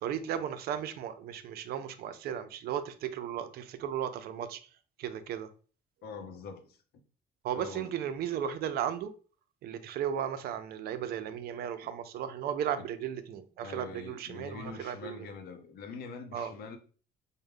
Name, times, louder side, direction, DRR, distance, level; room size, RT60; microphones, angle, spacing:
voice 1, 0.0-4.6 5.0-5.5 7.4-9.1 9.6-15.3 16.3-16.5, right 9 dB, 65° right, 0.4 m, -35 dB
voice 2, 6.0-6.8 7.6-7.9 13.6-16.8, left 4 dB, 65° left, 0.7 m, -44 dB
3.5 x 2.1 x 3.5 m
cardioid pair, 110°, 17 cm